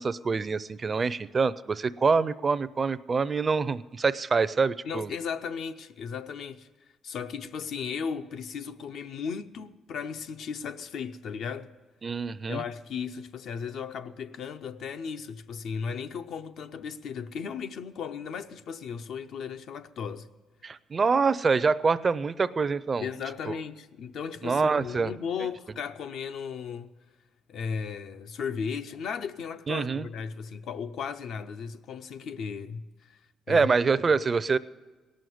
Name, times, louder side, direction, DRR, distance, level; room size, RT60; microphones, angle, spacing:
voice 1, 0.0-5.1 12.0-12.6 20.6-23.1 23.5-23.6 24.4-25.1 29.7-30.1 33.5-34.6, right 4 dB, 35° right, 0.4 m, -25 dB
voice 2, 4.8-6.7 7.0-11.7 12.5-20.3 23.0-26.9 27.5-33.2 33.5-33.7, left 6 dB, 70° left, 0.6 m, -36 dB
17.5 x 6.4 x 9.3 m
cardioid pair, 90°, 0 cm